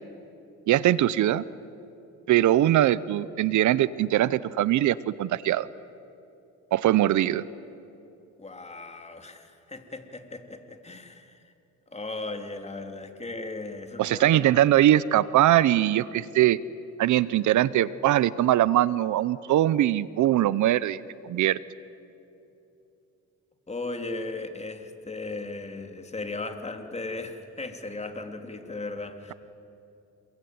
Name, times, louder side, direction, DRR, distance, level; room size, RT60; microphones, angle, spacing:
voice 1, 0.7-1.4 2.3-5.7 6.7-7.4 14.0-16.6 17.0-21.6, right 13 dB, 75° right, 19 dB, 0.7 m, -22 dB
voice 2, 8.4-11.4 11.9-14.5 23.7-29.3, left 3 dB, 20° left, 5 dB, 3.0 m, -37 dB
27.5 x 22.5 x 9.5 m, 2.8 s
cardioid pair, 90°, 30 cm